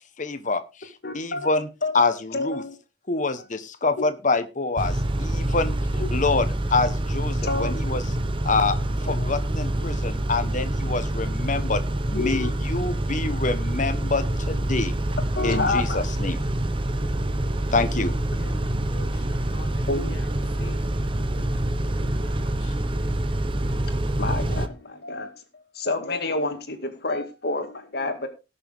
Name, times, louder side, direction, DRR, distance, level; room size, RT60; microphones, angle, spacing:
voice 1, 0.2-1.7 1.9-2.6 3.1-5.7 6.1-8.0 8.4-8.7 9.1-11.8 12.1-14.9 15.4-16.4 17.7-18.1, left 3 dB, 45° left, 1.3 m, -26 dB
voice 2, 1.0-1.5 1.8-2.0 2.3-2.8 6.0-6.1 7.4-7.8 9.2-9.4 12.1-12.5 15.4-16.0 19.9-20.2 24.2-28.3, left 3 dB, 65° left, 2.1 m, -29 dB
Car / Idling / Accelerating revving vroom, 4.8-24.7, right 1 dB, 30° right, 0.9 m, -26 dB
voice 3, 18.4-20.9 21.8-22.8, left 1 dB, 85° left, 2.8 m, -45 dB
18.5 x 6.7 x 3.6 m
head